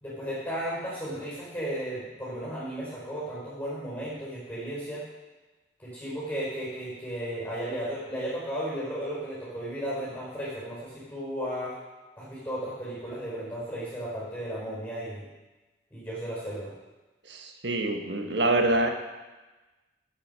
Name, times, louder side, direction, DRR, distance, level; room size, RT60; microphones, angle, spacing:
voice 1, 0.0-5.0 5.8-11.8 12.2-15.2 15.9-16.7, equal, 10° left, -7 dB, 4.7 m, -34 dB
voice 2, 17.3-18.9, right 2 dB, 80° right, 4 dB, 1.4 m, -26 dB
13.5 x 7.9 x 5.5 m, 1.2 s
head